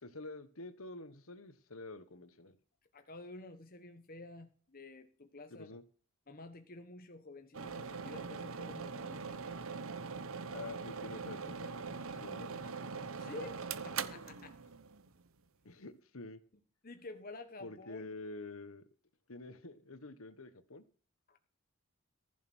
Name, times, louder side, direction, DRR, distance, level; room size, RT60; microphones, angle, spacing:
voice 1, 0.0-2.6 5.5-5.8 10.5-12.7 15.6-16.4 17.6-18.8 19.3-20.8, left 2 dB, 65° left, 1.4 m, -48 dB
voice 2, 2.9-5.7 6.3-9.4 13.2-14.6 16.8-18.1 21.3-21.4, left 2 dB, 40° left, 1.2 m, -50 dB
sound 1, 7.5-15.2, right 5 dB, 65° right, 1.0 m, -42 dB
15.0 x 6.6 x 6.3 m
head